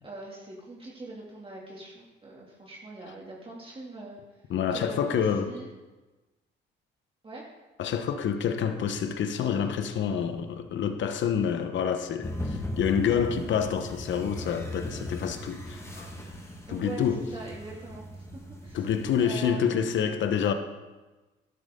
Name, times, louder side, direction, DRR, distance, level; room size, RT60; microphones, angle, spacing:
voice 1, 0.0-4.2 4.7-5.7 7.2-7.4 16.7-18.9 19.2-20.1, right 2 dB, 25° right, 2.4 m, -42 dB
voice 2, 4.5-5.5 7.8-16.1 16.7-17.2 18.7-20.5, left 7 dB, 70° left, 1.1 m, -27 dB
sound 1, 12.2-19.2, left 1 dB, 15° left, 1.7 m, -38 dB
12.0 x 12.0 x 3.7 m
cardioid pair, 90°, 20 cm